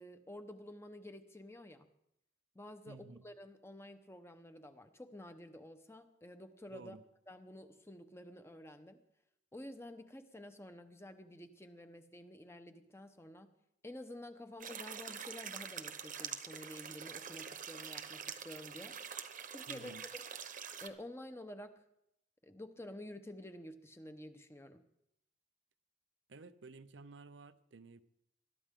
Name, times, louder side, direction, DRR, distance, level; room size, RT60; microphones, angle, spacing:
voice 1, 0.0-1.9 2.5-7.0 7.3-9.0 9.5-13.5 13.8-18.9 19.5-19.9 20.8-21.8 22.4-24.8, left 1 dB, 15° left, 8 dB, 1.0 m, -50 dB
voice 2, 2.9-3.3 6.7-7.0 19.7-20.1 26.3-28.0, right 3 dB, 75° right, 12 dB, 0.7 m, -53 dB
sound 1, 14.6-20.9, right 8 dB, 45° right, 1.0 m, -45 dB
21.5 x 12.5 x 3.8 m, 0.78 s
head